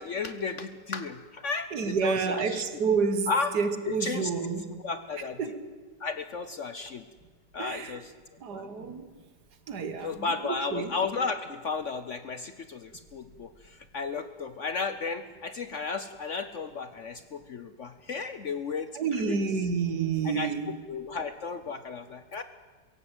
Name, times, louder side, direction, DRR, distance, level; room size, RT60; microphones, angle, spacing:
voice 1, 0.0-2.6 3.3-3.5 3.9-4.3 4.8-5.4 6.0-7.0 7.5-8.1 8.5-8.7 10.0-19.5 20.2-20.5 20.9-22.4, left 4 dB, 55° left, 0.9 m, -34 dB
voice 2, 1.7-4.7 5.4-5.5 7.6-8.0 8.4-9.1 9.7-10.9 18.9-20.7, right 5 dB, 65° right, 1.9 m, -29 dB
23.0 x 17.0 x 8.0 m
omnidirectional pair, 1.9 m